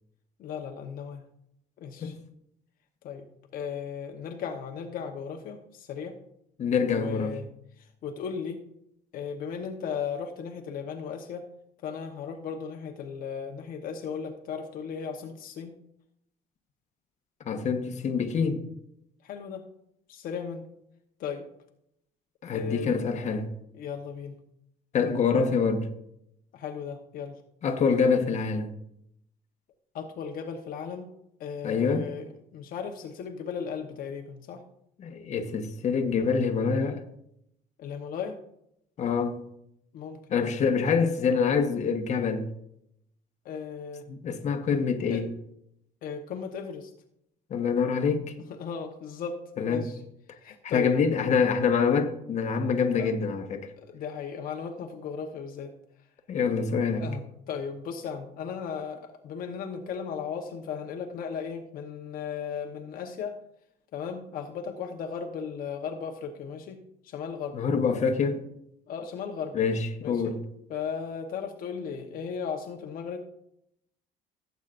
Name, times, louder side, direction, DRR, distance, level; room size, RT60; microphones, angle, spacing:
voice 1, 0.4-1.2 1.8-2.1 3.0-3.3 3.5-6.2 6.9-7.5 8.0-8.6 9.1-11.5 11.8-15.7 19.2-19.6 20.1-20.7 21.2-21.5 22.5-23.1 23.7-24.4 26.5-27.4 29.9-31.1 31.4-34.6 37.8-38.4 39.9-40.5 43.4-44.1 45.1-45.3 46.0-46.9 48.6-49.4 49.7-50.0 50.4-50.9 53.0-53.1 53.8-55.7 57.0-63.4 63.9-66.8 67.0-67.6 68.9-69.6 70.0-70.3 70.7-73.2, left 6 dB, 65° left, 1.1 m, -36 dB
voice 2, 6.6-7.4 17.4-18.7 22.4-23.5 24.9-25.9 27.6-28.7 31.6-32.1 35.0-37.0 39.0-39.4 40.3-42.4 44.1-45.3 47.5-48.3 49.6-49.9 50.6-53.7 56.3-57.0 67.5-68.4 69.5-70.4, left 5 dB, 50° left, 1.2 m, -26 dB
16.5 x 8.2 x 2.5 m
cardioid pair, 125°, 16 cm